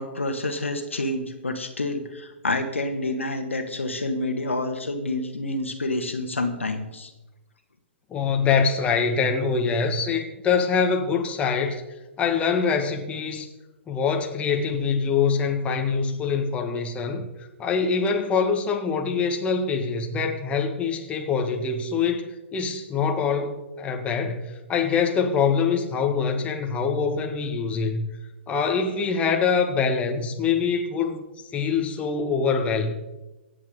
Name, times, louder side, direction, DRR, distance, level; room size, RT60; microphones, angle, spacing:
voice 1, 0.0-7.1, left 2 dB, 80° left, 6 dB, 1.6 m, -28 dB
voice 2, 8.1-11.8 12.2-13.5 13.9-17.3 17.6-28.1 28.5-31.2 31.5-32.9, left 5 dB, 20° left, 3 dB, 1.6 m, -24 dB
24.0 x 8.4 x 3.9 m, 1.0 s
figure-of-eight pair, 115°, 7 cm